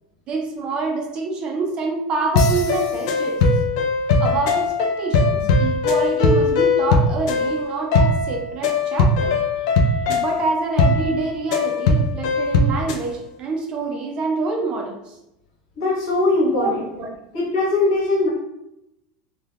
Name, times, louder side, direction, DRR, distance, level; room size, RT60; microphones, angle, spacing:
voice 1, 0.3-3.4 4.2-9.4 10.1-15.2 16.6-17.1, right 3 dB, 25° right, 2 dB, 0.4 m, -26 dB
sound 1, 2.3-13.0, left 3 dB, 55° left, 0.3 m, -20 dB
voice 2, 15.7-16.9 17.3-18.3, left 2 dB, 70° left, -4 dB, 1.3 m, -20 dB
3.3 x 2.1 x 2.3 m, 0.85 s
supercardioid pair, 180°, 4 cm